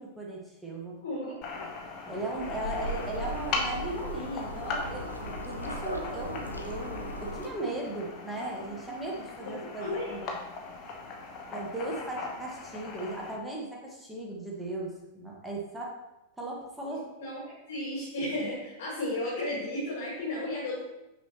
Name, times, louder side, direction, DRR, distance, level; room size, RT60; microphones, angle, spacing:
voice 1, 0.0-1.0 2.1-10.3 11.5-15.9 16.4-17.0, right 2 dB, 5° right, -3 dB, 1.5 m, -37 dB
voice 2, 1.0-1.7 9.5-9.6 9.8-10.1 16.9-17.4 17.7-20.8, left 1 dB, 55° left, -6 dB, 1.8 m, -34 dB
sound 1, 1.4-13.3, left 3 dB, 40° left, 1.0 m, -39 dB
sound 2, 2.4-7.5, equal, 85° left, 0.6 m, -38 dB
6.0 x 5.6 x 3.0 m, 0.97 s
figure-of-eight pair, 90°, 0 cm